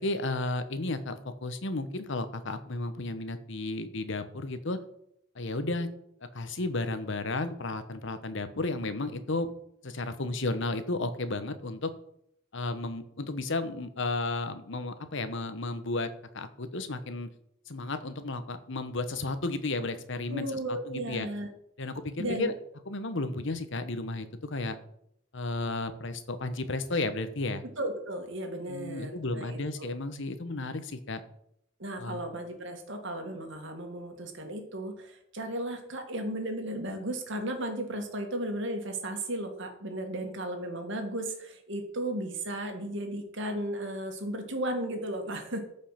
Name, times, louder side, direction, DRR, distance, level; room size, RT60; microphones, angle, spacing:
voice 1, 0.0-4.8 5.3-5.9 6.3-9.5 9.8-11.9 12.5-17.3 17.7-21.3 21.8-22.5 22.9-24.8 25.3-27.6 28.7-31.2 32.0-32.2, left 2 dB, 65° left, 10 dB, 1.1 m, -33 dB
voice 2, 20.3-21.5 22.2-22.5 27.8-29.9 31.8-45.6, right 1 dB, 65° right, 4 dB, 2.1 m, -35 dB
14.0 x 5.5 x 5.9 m, 0.74 s
head